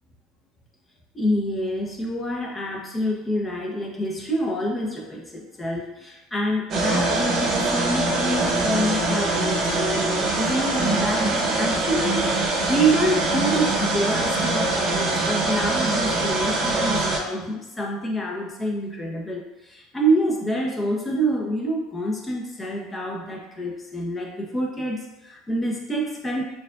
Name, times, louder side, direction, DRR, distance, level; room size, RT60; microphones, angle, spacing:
voice 1, 1.1-26.4, right 1 dB, 20° left, -1 dB, 1.1 m, -27 dB
sound 1, 6.7-17.2, right 2 dB, 45° right, 1.0 m, -23 dB
6.3 x 2.7 x 2.5 m, 1.0 s
hypercardioid pair, 75°, 0 cm